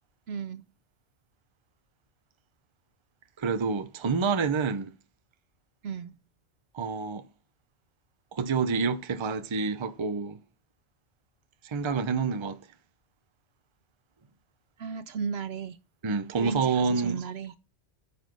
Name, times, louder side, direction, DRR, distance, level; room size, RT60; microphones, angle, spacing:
voice 1, 0.3-0.6 5.8-6.2 14.8-15.8 16.4-17.5, right 6 dB, 60° right, 0.9 m, -35 dB
voice 2, 3.4-4.9 6.7-7.3 8.3-10.4 11.6-12.6 16.0-17.2, right 5 dB, 30° right, 0.6 m, -28 dB
9.6 x 6.1 x 5.3 m
omnidirectional pair, 1.3 m